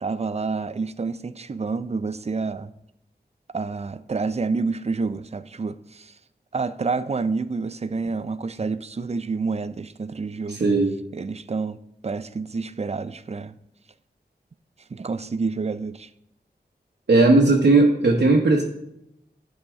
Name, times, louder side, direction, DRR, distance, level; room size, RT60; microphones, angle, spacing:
voice 1, 0.0-2.7 3.5-6.2 6.5-10.6 11.1-11.8 12.0-13.5 14.9-16.1, right 4 dB, 40° right, 14 dB, 0.4 m, -28 dB
voice 2, 10.5-10.9 17.1-18.6, right 3 dB, 75° right, -1 dB, 0.9 m, -17 dB
12.0 x 4.2 x 3.5 m, 0.83 s
wide cardioid pair, 50°, 17 cm